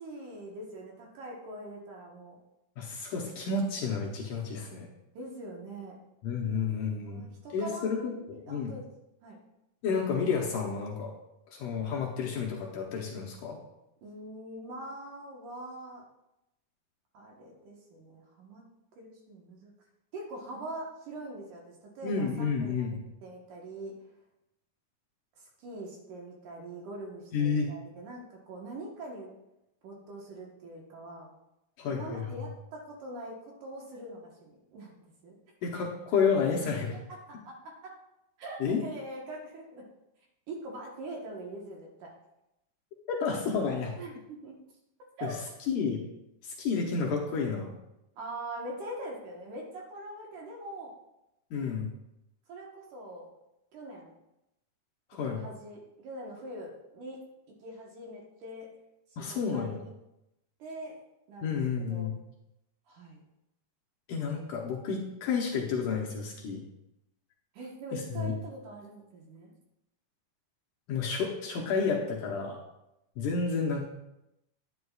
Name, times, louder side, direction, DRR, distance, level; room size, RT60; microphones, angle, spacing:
voice 1, 0.0-2.4 5.1-6.0 7.0-8.9 9.2-9.4 14.0-16.0 17.1-18.6 19.0-19.7 20.1-22.9 23.2-23.9 25.4-29.3 29.8-31.3 31.9-35.4 36.9-37.9 38.4-39.9 40.5-42.1 44.0-44.5 45.2-45.4 48.2-50.9 52.5-53.3 53.7-54.1 55.3-57.2 57.6-58.7 59.1-59.9 60.6-61.0 61.3-62.1 62.9-63.2 67.5-69.5, right 1 dB, 65° right, -1 dB, 2.5 m, -43 dB
voice 2, 2.8-4.9 6.2-7.2 7.5-8.7 9.8-11.1 11.5-13.6 22.0-23.0 27.3-27.7 31.8-32.4 35.6-37.0 38.6-38.8 43.1-44.0 45.2-45.4 45.7-46.0 46.4-47.7 51.5-51.9 55.1-55.4 59.2-59.8 61.4-62.2 64.1-66.7 67.9-68.3 70.9-72.6 73.2-73.8, left 5 dB, 70° left, -1 dB, 2.1 m, -30 dB
10.0 x 9.5 x 2.4 m, 0.89 s
omnidirectional pair, 4.4 m